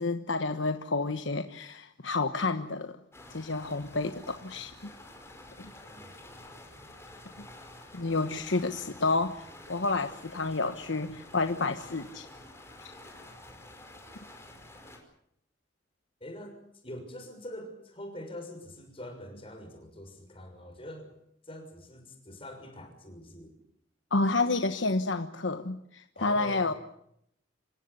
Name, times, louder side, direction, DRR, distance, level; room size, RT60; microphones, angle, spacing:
voice 1, 0.0-3.0 3.3-4.7 5.6-5.7 7.9-12.3 24.1-26.7, left 3 dB, 75° left, 8 dB, 1.2 m, -30 dB
sound 1, 3.1-15.0, left 1 dB, 15° left, 5.2 m, -49 dB
voice 2, 16.2-16.6 16.8-21.1 21.4-23.5 26.2-26.8, left 1 dB, 30° left, 5 dB, 6.4 m, -44 dB
27.5 x 16.0 x 9.7 m, 0.74 s
head